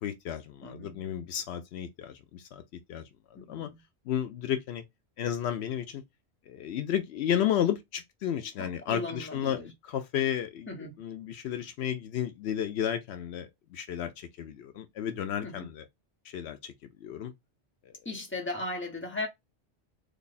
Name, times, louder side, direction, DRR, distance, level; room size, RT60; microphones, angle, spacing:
voice 1, 0.0-2.6 2.9-3.1 3.5-3.7 4.1-4.8 5.2-6.0 6.5-10.7 11.0-15.9 16.2-16.7 17.0-17.3 17.8-18.0, left 9 dB, 75° left, 0.8 m, -32 dB
voice 2, 0.6-1.0 3.3-3.8 8.6-9.7 10.7-11.0 15.4-15.7 18.0-19.3, left 2 dB, 10° left, 1.0 m, -37 dB
3.3 x 2.3 x 4.0 m
omnidirectional pair, 1.1 m